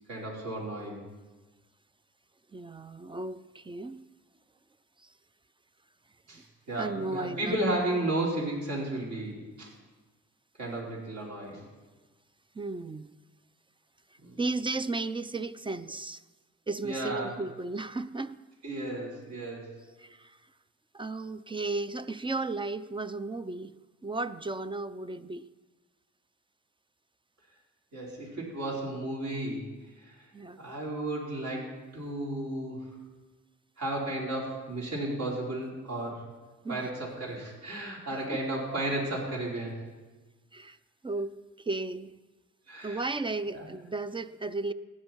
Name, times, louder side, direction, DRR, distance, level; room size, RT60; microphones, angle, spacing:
voice 1, 0.1-1.0 6.3-9.7 10.6-11.6 14.2-14.4 16.8-17.3 18.6-19.8 27.9-29.7 30.0-30.3 30.6-33.0 33.8-36.2 36.7-39.8 42.7-43.1 43.5-43.7, right 1 dB, 70° right, 4.8 m, -34 dB
voice 2, 2.5-4.0 5.0-5.1 6.3-6.4 6.8-7.5 12.5-13.1 14.4-16.2 16.7-18.4 20.0-20.4 20.9-23.8 24.0-25.5 30.3-30.6 36.6-36.9 38.1-38.2 40.5-40.8 41.0-42.1 42.8-44.7, right 3 dB, 15° right, 0.4 m, -34 dB
16.0 x 10.5 x 4.5 m
cardioid pair, 90°, 30 cm